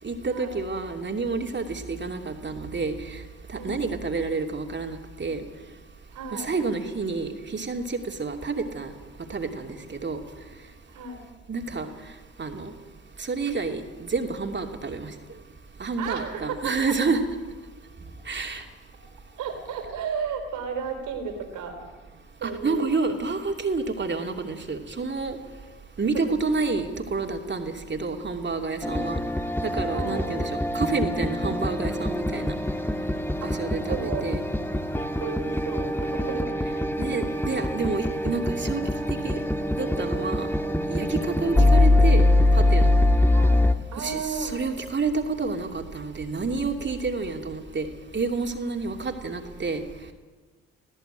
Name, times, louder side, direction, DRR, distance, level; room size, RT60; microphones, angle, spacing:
voice 1, 0.0-3.2 3.6-5.4 6.3-8.9 9.3-10.2 11.5-11.9 12.4-12.7 13.2-15.1 15.8-17.2 18.3-18.6 22.4-25.4 26.0-29.2 29.6-32.6 33.4-34.4 37.0-39.4 39.7-40.5 40.9-42.9 44.0-47.9 48.1-49.8, right 4 dB, 35° right, 4 dB, 2.8 m, -29 dB
voice 2, 3.6-4.0 6.1-6.5 10.9-11.2 16.0-16.7 19.4-21.8 22.4-22.9 26.3-26.8 28.8-29.3 29.9-30.4 33.4-34.2 35.2-36.7 37.0-37.2 41.5-41.8 43.3-43.6 43.9-44.6, right 5 dB, 75° right, 5 dB, 3.8 m, -34 dB
sound 1, 28.8-43.7, left 1 dB, 5° left, 1.5 m, -23 dB
19.0 x 16.0 x 9.0 m, 1.3 s
hypercardioid pair, 55°, 30 cm